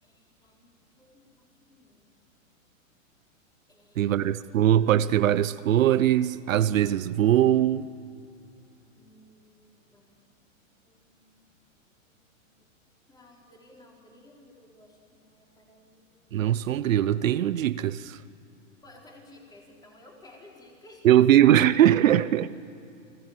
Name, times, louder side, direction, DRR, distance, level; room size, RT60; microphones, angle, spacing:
voice 1, 0.0-2.1 3.7-4.1 8.9-10.4 10.8-11.5 12.0-12.6 13.1-16.1 18.8-21.1, left 1 dB, 10° left, 4.5 m, -55 dB
voice 2, 4.0-7.9 16.3-18.2 21.0-22.5, right 11 dB, 75° right, 0.9 m, -21 dB
30.0 x 19.5 x 7.7 m
hypercardioid pair, 150°, 40 cm